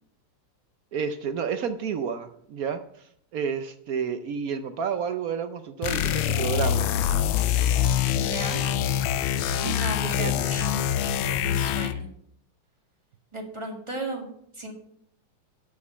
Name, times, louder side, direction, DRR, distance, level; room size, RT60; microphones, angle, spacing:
voice 1, 0.9-6.9 9.4-9.8 10.2-10.5, right 6 dB, 70° right, 9 dB, 0.8 m, -31 dB
sound 1, 5.8-12.1, left 10 dB, 80° left, 1.4 m, -25 dB
voice 2, 8.1-8.6 9.6-12.1 13.3-14.7, right 2 dB, 15° right, 2 dB, 1.7 m, -36 dB
11.5 x 5.3 x 6.9 m, 0.69 s
omnidirectional pair, 2.2 m